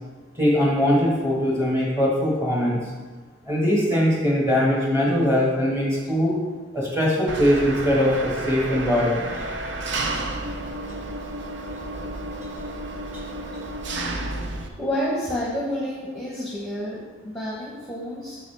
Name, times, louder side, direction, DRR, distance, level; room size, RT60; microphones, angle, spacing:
voice 1, 0.4-2.8 3.4-6.3 6.7-9.3 13.1-13.2, equal, 15° right, -4 dB, 1.7 m, -21 dB
Engine, 7.3-14.7, right 2 dB, 60° right, 0.6 m, -31 dB
voice 2, 14.8-18.4, equal, ahead, -7 dB, 1.0 m, -29 dB
6.5 x 6.5 x 3.4 m, 1.3 s
head